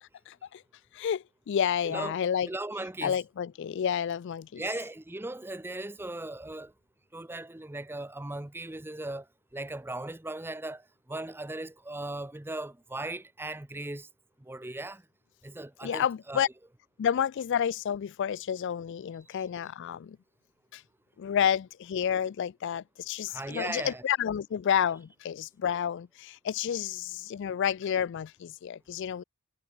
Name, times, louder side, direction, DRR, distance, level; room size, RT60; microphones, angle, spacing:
voice 1, 0.3-0.6 0.9-2.5 3.0-4.6 15.8-16.5 17.0-20.2 20.7-20.8 21.2-29.2, left 8 dB, 55° left, 0.3 m, -30 dB
voice 2, 1.8-3.2 4.6-6.7 7.1-9.3 9.5-14.1 14.4-15.0 15.4-16.5 23.3-24.0, right 2 dB, 10° right, 0.6 m, -38 dB
head